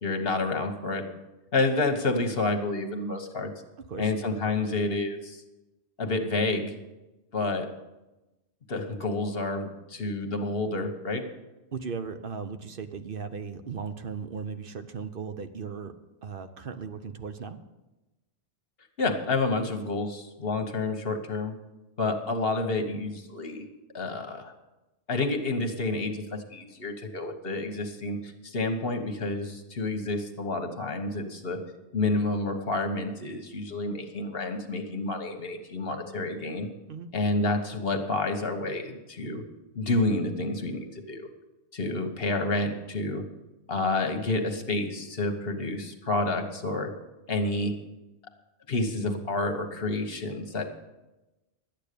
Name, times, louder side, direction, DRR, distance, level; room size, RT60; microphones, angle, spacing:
voice 1, 0.0-1.1 1.5-3.5 4.0-5.4 6.0-6.8 7.3-7.7 8.7-11.2 19.0-21.5 22.0-23.7 23.9-24.5 25.1-31.6 31.9-36.7 37.1-39.4 39.7-41.3 41.7-43.2 43.7-46.9 47.3-47.7 48.7-50.6, left 2 dB, 60° left, 6 dB, 1.5 m, -29 dB
voice 2, 11.7-15.9 16.2-17.6 36.9-37.1, right 5 dB, 55° right, 9 dB, 0.9 m, -37 dB
12.0 x 9.2 x 6.8 m, 1.0 s
omnidirectional pair, 1.1 m